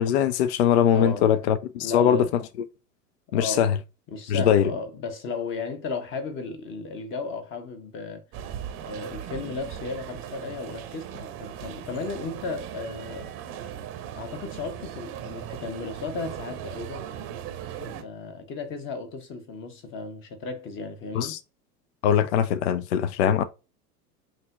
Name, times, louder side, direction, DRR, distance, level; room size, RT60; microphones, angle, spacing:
voice 1, 0.0-2.4 3.3-3.8 4.3-4.7 21.1-21.4 22.0-23.4, left 9 dB, 45° left, 0.5 m, -21 dB
voice 2, 0.9-1.3 1.8-2.3 3.3-3.7 4.1-8.2 8.8-13.3 14.2-17.1 17.8-21.4, left 3 dB, 25° left, 1.0 m, -34 dB
sound 1, 8.3-18.0, right 10 dB, 25° right, 0.8 m, -38 dB
7.4 x 2.8 x 2.4 m
figure-of-eight pair, 85°, 47 cm